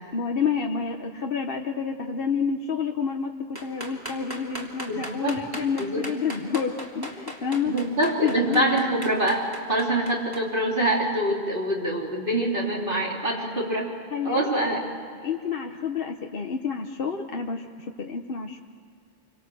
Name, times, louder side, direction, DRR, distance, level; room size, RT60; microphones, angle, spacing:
voice 1, 0.1-7.7 8.2-8.7 14.1-14.5 15.2-18.6, left 6 dB, 55° left, 3 dB, 1.3 m, -29 dB
sound 1, 3.5-10.4, equal, 20° right, 3.4 m, -38 dB
voice 2, 4.9-5.4 5.8-6.1 7.7-13.9 14.2-14.8, right 1 dB, 45° right, -3 dB, 3.7 m, -25 dB
28.0 x 25.0 x 7.8 m, 2.2 s
omnidirectional pair, 1.2 m